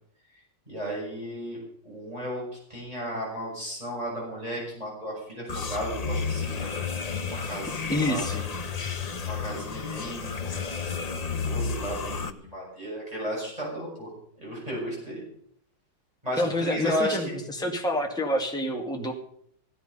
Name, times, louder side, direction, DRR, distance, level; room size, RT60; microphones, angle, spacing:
voice 1, 0.7-1.6 1.8-2.4 2.7-6.7 7.2-8.5 9.2-10.9 11.4-14.1 14.4-15.2 16.2-17.2, equal, 20° right, -5 dB, 7.2 m, -34 dB
sound 1, 5.5-12.3, left 5 dB, 50° left, 0.4 m, -32 dB
voice 2, 7.9-8.4 16.4-19.1, left 1 dB, ahead, 1 dB, 1.9 m, -28 dB
16.0 x 11.5 x 5.6 m, 0.66 s
omnidirectional pair, 1.9 m